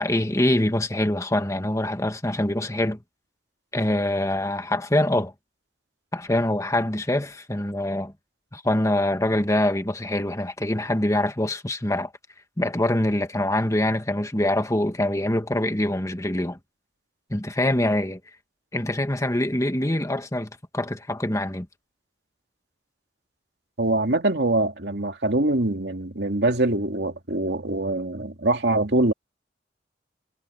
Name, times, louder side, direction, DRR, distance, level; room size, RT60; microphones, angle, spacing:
voice 1, 0.0-3.0 3.7-5.3 6.1-8.1 8.5-12.1 12.6-16.6 17.3-18.2 18.7-21.7, left 1 dB, 20° left, 1.6 m, -24 dB
voice 2, 23.8-29.1, right 2 dB, 65° right, 2.5 m, -23 dB
head